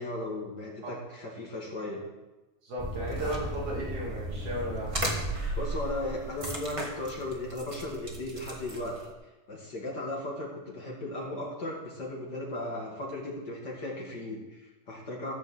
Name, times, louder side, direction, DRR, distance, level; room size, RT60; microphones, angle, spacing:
voice 1, 0.0-2.0 5.6-9.0 9.5-15.3, left 1 dB, 35° left, -2 dB, 2.4 m, -36 dB
voice 2, 2.6-4.9, right 1 dB, 70° right, -5 dB, 3.9 m, -35 dB
sound 1, 2.8-9.1, right 1 dB, 20° right, 0.8 m, -35 dB
15.5 x 5.7 x 7.2 m, 1.1 s
omnidirectional pair, 3.6 m